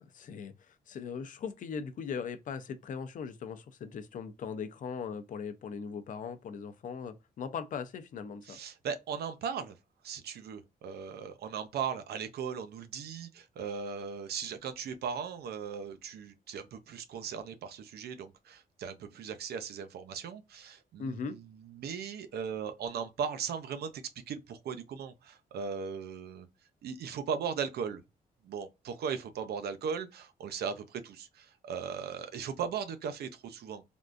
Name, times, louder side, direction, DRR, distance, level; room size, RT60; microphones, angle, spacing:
voice 1, 0.0-8.6 21.0-21.4, left 6 dB, 55° left, 0.5 m, -39 dB
voice 2, 8.4-9.8 10.0-26.5 26.8-28.0 28.4-33.8, right 6 dB, 85° right, 0.5 m, -38 dB
3.5 x 2.5 x 2.3 m
wide cardioid pair, 170°, 16 cm